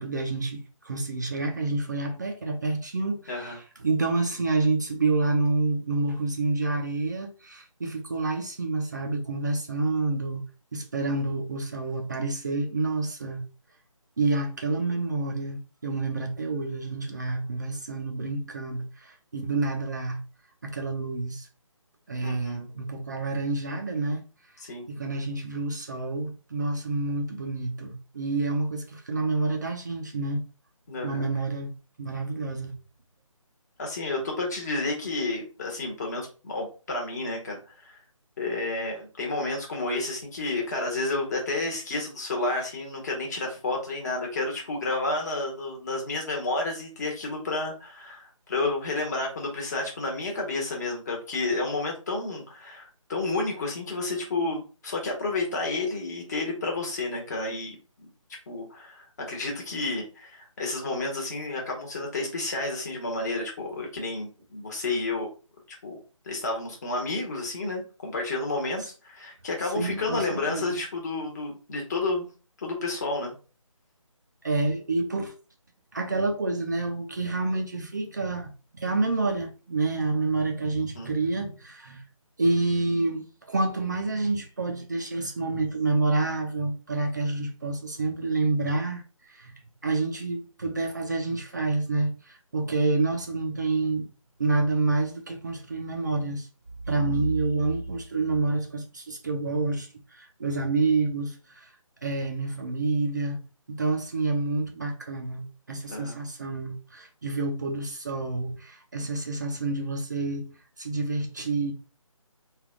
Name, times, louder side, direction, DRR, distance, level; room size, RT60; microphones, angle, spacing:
voice 1, 0.0-10.4 10.7-13.4 14.2-20.2 20.6-21.5 22.1-24.2 24.9-30.4 31.0-31.7 32.0-32.8 69.6-70.8 74.4-75.3 75.9-82.0 82.4-89.5 89.8-94.1 94.4-96.5 96.9-101.7 102.0-103.4 103.7-111.7, right 3 dB, 35° right, 0.4 m, -28 dB
voice 2, 22.2-22.6 24.6-24.9 30.9-31.2 33.8-38.0 38.4-57.8 58.5-65.3 65.7-66.0 66.2-72.2 72.6-73.3 80.9-81.1 92.7-92.8 97.0-97.2 105.9-106.2, left 2 dB, 30° left, 1.2 m, -31 dB
3.4 x 2.3 x 3.6 m
figure-of-eight pair, 160°, 18 cm